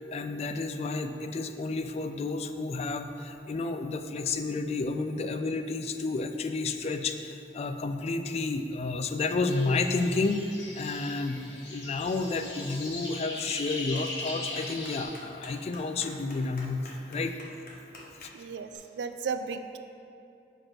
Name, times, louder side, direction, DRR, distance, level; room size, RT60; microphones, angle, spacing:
voice 1, 0.1-10.4 10.8-17.4 18.2-18.3, left 3 dB, 35° left, 8 dB, 0.3 m, -31 dB
sound 1, 9.5-15.0, left 2 dB, 90° left, 1.4 m, -40 dB
Clapping, 12.1-18.8, left 1 dB, 50° left, 1.0 m, -51 dB
voice 2, 18.3-19.8, right 5 dB, 80° right, 9 dB, 0.4 m, -35 dB
4.9 x 4.4 x 6.0 m, 2.6 s
head